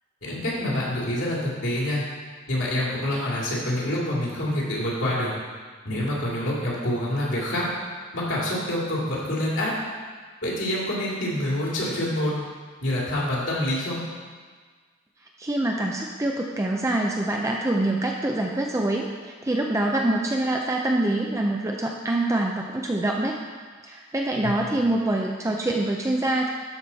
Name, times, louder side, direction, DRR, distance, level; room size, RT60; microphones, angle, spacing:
voice 1, 0.2-2.0 2.5-5.3 5.8-7.7 8.1-9.7 10.4-12.4 12.8-14.0 24.4-24.8, left 1 dB, 70° left, -5 dB, 2.5 m, -26 dB
voice 2, 15.4-23.4 23.8-26.5, right 1 dB, 15° right, 0 dB, 0.5 m, -25 dB
12.5 x 5.0 x 4.1 m, 1.5 s
head